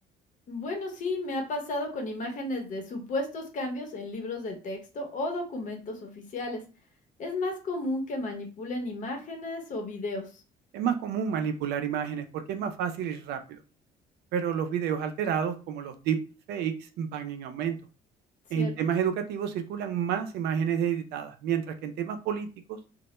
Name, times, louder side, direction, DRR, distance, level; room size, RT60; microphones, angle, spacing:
voice 1, 0.5-6.6 7.2-10.4 18.5-18.7, left 2 dB, 50° left, 3 dB, 0.8 m, -33 dB
voice 2, 10.7-13.6 14.3-16.2 16.5-17.8 18.5-22.8, right 8 dB, 75° right, 8 dB, 0.4 m, -30 dB
2.1 x 2.1 x 2.9 m, 0.33 s
cardioid pair, 110°, 17 cm